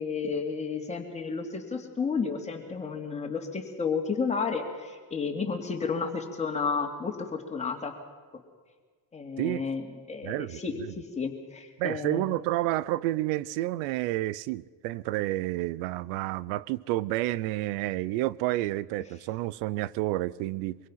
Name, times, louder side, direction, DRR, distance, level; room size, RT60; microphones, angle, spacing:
voice 1, 0.0-7.9 9.1-12.2, left 5 dB, 15° left, 2.5 m, -32 dB
voice 2, 10.2-10.9 11.8-20.8, right 16 dB, 85° right, 0.8 m, -30 dB
24.5 x 23.0 x 5.7 m
cardioid pair, 165°, 46 cm